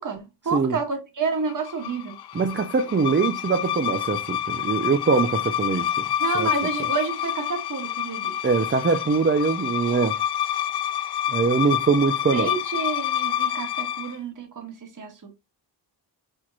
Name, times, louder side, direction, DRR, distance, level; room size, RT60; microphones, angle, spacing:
voice 1, 0.0-2.1 6.2-8.4 12.3-15.3, right 5 dB, 45° right, 1.4 m, -30 dB
sound 1, 1.5-14.2, left 11 dB, 60° left, 0.5 m, -28 dB
voice 2, 2.3-6.0 6.3-6.5 8.4-10.2 11.3-12.5, right 4 dB, 25° right, 0.5 m, -22 dB
4.6 x 4.5 x 2.4 m
wide cardioid pair, 110°, 44 cm